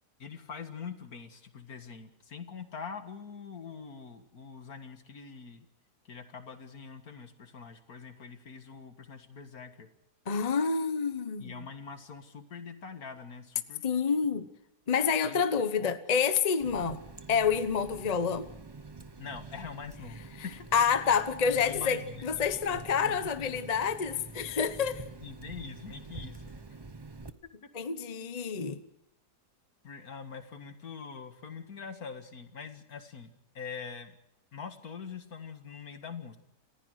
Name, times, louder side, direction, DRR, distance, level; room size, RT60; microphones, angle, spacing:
voice 1, 0.2-5.7 6.0-9.9 11.4-13.8 15.1-15.4 15.8-15.9 19.2-20.6 21.5-22.3 22.7-23.6 25.2-26.6 28.1-28.3 29.8-34.2 34.5-36.4, left 6 dB, 65° left, 8 dB, 2.3 m, -44 dB
voice 2, 10.3-11.6 13.8-14.5 14.9-17.0 17.3-18.5 20.7-25.0 27.7-28.8, left 6 dB, 30° left, 11 dB, 1.0 m, -28 dB
Water tap faucet, 16.6-27.3, right 3 dB, 20° right, 0.8 m, -47 dB
28.5 x 15.5 x 6.5 m, 0.86 s
omnidirectional pair, 1.7 m